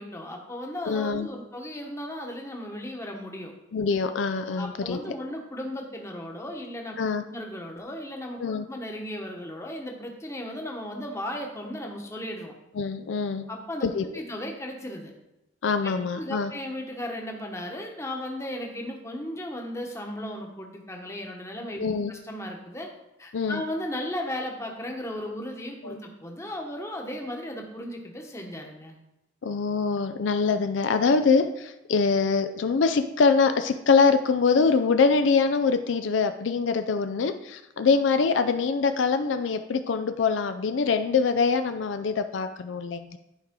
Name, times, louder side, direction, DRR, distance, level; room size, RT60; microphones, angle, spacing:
voice 1, 0.0-3.5 4.6-7.0 7.3-8.4 8.7-12.5 13.5-13.9 14.1-15.1 16.1-22.9 23.2-29.0, left 1 dB, 15° left, 1 dB, 1.1 m, -35 dB
voice 2, 0.9-1.3 3.7-5.0 7.0-7.2 8.4-8.7 12.8-13.5 13.8-14.1 15.6-16.5 21.8-22.1 23.3-23.6 25.8-26.0 29.4-43.2, left 5 dB, 75° left, 9 dB, 0.4 m, -24 dB
11.5 x 4.8 x 3.7 m, 0.90 s
head